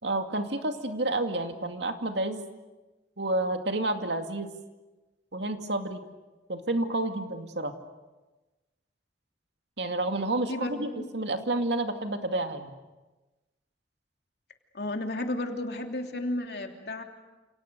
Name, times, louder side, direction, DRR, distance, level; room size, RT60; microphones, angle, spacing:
voice 1, 0.0-2.4 3.2-4.5 5.3-6.0 6.5-7.7 9.8-10.9 11.1-12.7, right 2 dB, 70° right, 5 dB, 2.4 m, -30 dB
voice 2, 10.5-11.1 14.7-17.0, left 1 dB, 60° left, 3 dB, 3.0 m, -33 dB
30.0 x 28.5 x 6.8 m, 1.1 s
head